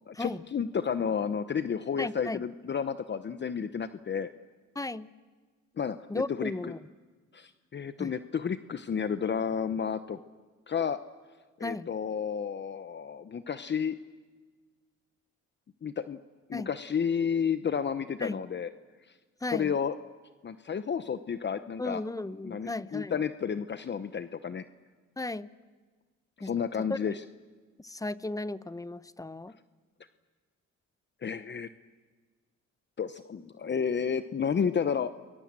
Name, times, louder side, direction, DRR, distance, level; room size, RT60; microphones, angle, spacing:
voice 1, 0.1-4.3 5.8-6.5 7.3-10.2 10.7-11.0 11.6-14.0 15.8-16.2 16.5-18.7 19.5-19.9 20.4-22.0 22.4-24.6 26.4-27.2 31.2-31.7 33.0-35.1, left 7 dB, 35° left, 12 dB, 0.9 m, -31 dB
voice 2, 2.0-2.4 4.7-5.1 6.1-6.8 8.0-8.1 11.6-11.9 16.5-16.7 18.2-18.4 19.4-19.7 21.8-23.2 25.2-25.5 26.4-27.0 27.8-29.5, left 2 dB, 10° left, 16 dB, 0.8 m, -35 dB
29.5 x 21.5 x 7.5 m, 1.4 s
cardioid pair, 90°, 30 cm